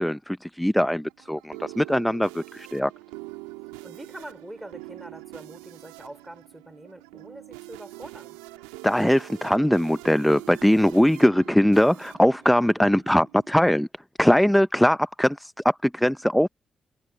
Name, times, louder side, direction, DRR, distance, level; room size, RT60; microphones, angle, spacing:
voice 1, 0.0-2.9 8.8-13.9 14.2-16.5, equal, 5° left, 0.8 m, -21 dB
sound 1, 0.8-13.5, right 23 dB, 90° right, 1.8 m, -44 dB
voice 2, 3.6-8.4, right 1 dB, 10° right, 5.5 m, -44 dB
hypercardioid pair, 40°, 0 cm